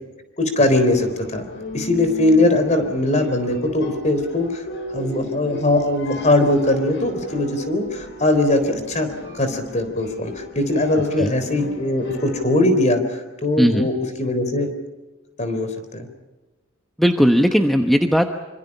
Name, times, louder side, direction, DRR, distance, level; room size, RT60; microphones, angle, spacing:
voice 1, 0.4-1.4 1.7-4.6 4.9-13.9 14.2-14.7 15.4-16.1, left 1 dB, 35° left, 8 dB, 3.9 m, -20 dB
sound 1, 0.6-12.6, left 1 dB, 60° left, 5.6 m, -37 dB
voice 2, 13.6-13.9 17.0-18.3, equal, ahead, 4 dB, 1.0 m, -17 dB
26.0 x 25.5 x 5.6 m, 1.2 s
head